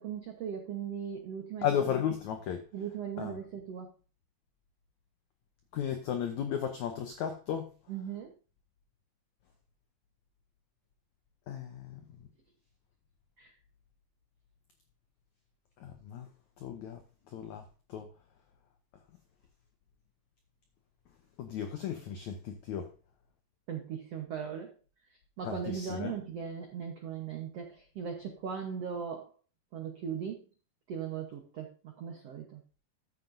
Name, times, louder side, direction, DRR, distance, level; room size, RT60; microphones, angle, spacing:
voice 1, 0.0-1.7 2.7-3.9 7.9-8.3 13.4-13.5 23.7-24.7 25.4-29.3 29.7-30.4 30.9-32.6, right 7 dB, 90° right, 3 dB, 1.3 m, -38 dB
voice 2, 1.6-2.6 3.2-3.4 5.7-7.7 11.5-12.0 15.8-16.3 16.6-17.0 17.3-17.6 17.9-18.1 21.4-22.9 25.4-26.1, left 9 dB, 90° left, 5 dB, 1.6 m, -34 dB
13.5 x 7.4 x 2.7 m, 0.35 s
omnidirectional pair, 4.6 m